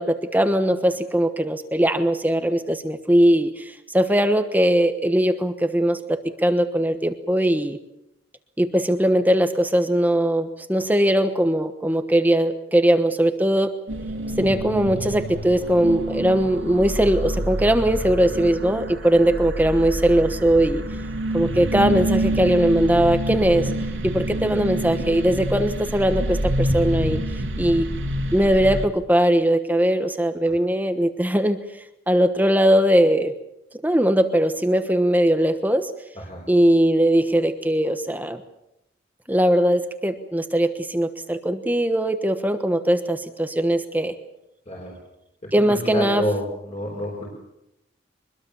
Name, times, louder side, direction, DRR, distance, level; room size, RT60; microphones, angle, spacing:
voice 1, 0.0-7.8 8.6-13.7 14.4-20.8 21.3-23.7 24.0-27.2 27.6-27.9 28.3-31.6 32.1-33.3 33.8-35.9 36.5-38.4 39.3-44.2 45.5-46.2, right 1 dB, 10° right, 8 dB, 1.2 m, -20 dB
sound 1, 13.9-28.9, right 1 dB, 75° right, 3.1 m, -27 dB
voice 2, 45.4-47.3, equal, 35° left, -2 dB, 5.1 m, -28 dB
24.0 x 22.0 x 7.1 m, 0.85 s
head